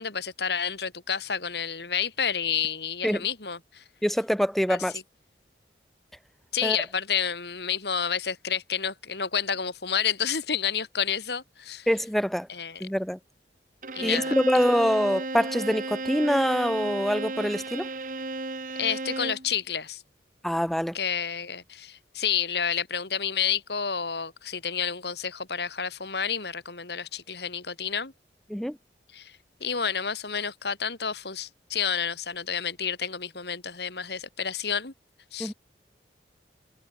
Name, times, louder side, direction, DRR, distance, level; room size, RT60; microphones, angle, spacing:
voice 1, 0.0-3.8 4.7-4.8 6.5-11.9 12.5-12.8 13.9-14.3 18.8-20.0 20.9-28.1 29.1-34.9 35.3-35.5, left 7 dB, 70° left, 2.6 m, -30 dB
voice 2, 4.0-4.9 6.6-6.8 11.9-12.5 12.8-13.2 14.0-17.9 20.4-21.0 28.5-28.8 35.4-35.5, equal, ahead, 0.4 m, -25 dB
Bowed string instrument, 13.8-19.5, right 3 dB, 45° right, 1.6 m, -33 dB
head